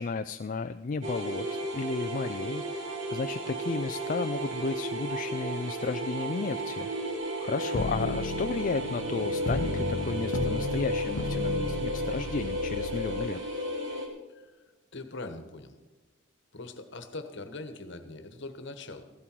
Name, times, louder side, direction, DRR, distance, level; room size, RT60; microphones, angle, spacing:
voice 1, 0.0-6.9 7.4-13.4, left 4 dB, 40° left, 9 dB, 0.4 m, -33 dB
sound 1, 1.0-14.1, equal, 65° right, 2.5 m, -33 dB
sound 2, 7.7-13.3, left 2 dB, 85° left, 1.0 m, -35 dB
voice 2, 14.3-14.6 14.9-15.8 16.5-19.0, left 2 dB, 60° left, 8 dB, 1.3 m, -42 dB
15.5 x 12.5 x 4.6 m, 1.2 s
head